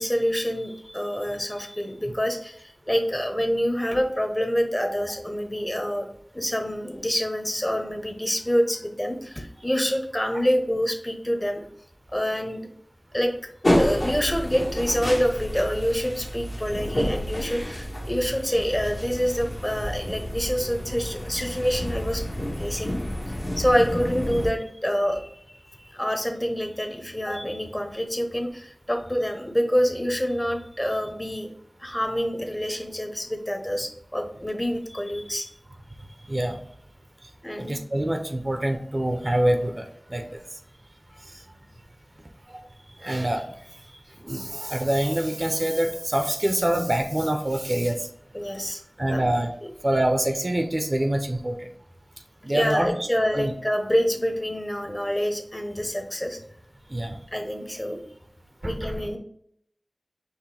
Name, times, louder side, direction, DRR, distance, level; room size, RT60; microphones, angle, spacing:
voice 1, 0.0-6.1 6.3-11.6 12.1-12.7 13.1-13.3 13.8-22.2 22.6-22.9 23.6-25.3 25.6-31.5 31.8-35.5 37.4-37.7 48.3-48.8 49.1-49.3 52.5-56.4 57.3-58.0 58.6-59.2, equal, 20° left, 4 dB, 0.9 m, -26 dB
sound 1, 13.6-24.5, equal, 60° left, 1.5 m, -29 dB
voice 2, 36.2-36.6 37.2-37.3 37.6-40.4 41.3-41.4 42.5-42.6 42.9-43.6 44.2-48.1 49.0-49.5 49.8-51.7 52.4-53.5 56.9-57.2 58.6-59.0, right 1 dB, 45° right, 5 dB, 0.6 m, -26 dB
4.9 x 3.1 x 3.3 m, 0.67 s
wide cardioid pair, 45°, 0 cm